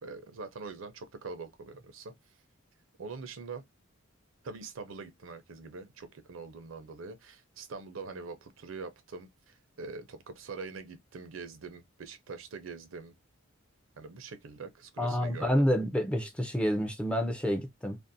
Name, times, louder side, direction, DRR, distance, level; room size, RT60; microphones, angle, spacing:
voice 1, 0.0-2.1 3.0-3.6 4.4-13.1 14.0-15.7, right 4 dB, 70° right, 0.6 m, -43 dB
voice 2, 15.0-18.0, equal, 5° left, 0.4 m, -28 dB
2.5 x 2.0 x 2.6 m
head